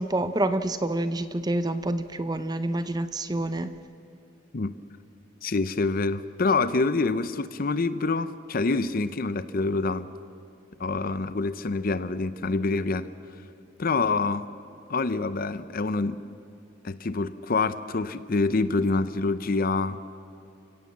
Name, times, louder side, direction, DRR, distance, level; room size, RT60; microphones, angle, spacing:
voice 1, 0.0-3.7, right 1 dB, 20° right, 11 dB, 0.7 m, -27 dB
voice 2, 5.4-10.1 10.8-13.1 13.8-14.5 14.9-16.2 16.8-20.0, left 3 dB, 45° left, 13 dB, 0.6 m, -26 dB
29.5 x 17.0 x 7.3 m, 2.8 s
head